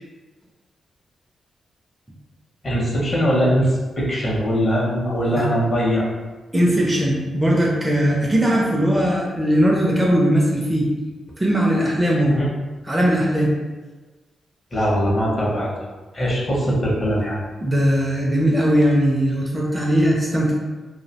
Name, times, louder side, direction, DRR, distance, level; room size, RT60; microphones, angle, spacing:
voice 1, 2.6-6.1 12.2-12.5 14.7-15.7 16.1-17.4, equal, 35° left, -4 dB, 0.6 m, -21 dB
voice 2, 6.5-10.9 11.4-12.4 12.8-13.5 17.6-20.5, equal, 15° right, -3 dB, 0.4 m, -19 dB
2.5 x 2.0 x 2.7 m, 1.2 s
wide cardioid pair, 145°, 0 cm